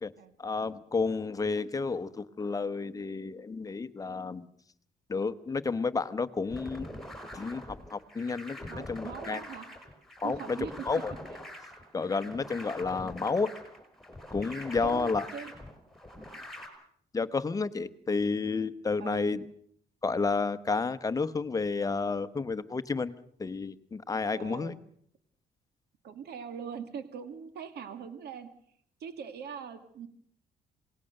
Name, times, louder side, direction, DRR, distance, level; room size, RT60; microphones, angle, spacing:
voice 1, 0.4-4.5 5.1-6.9 7.3-7.6 7.9-9.4 10.2-10.6 10.9-11.1 11.9-13.5 14.3-15.3 17.1-19.4 20.0-23.1 23.4-24.7, left 4 dB, 20° left, 12 dB, 1.1 m, -31 dB
sound 1, 6.5-16.7, left 1 dB, ahead, 5.5 m, -44 dB
voice 2, 8.7-9.7 10.2-10.9 14.8-15.5 19.0-19.4 24.3-24.8 26.0-28.5 29.0-30.1, right 7 dB, 70° right, 9 dB, 2.3 m, -41 dB
27.5 x 19.0 x 6.7 m, 0.65 s
cardioid pair, 135°, 17 cm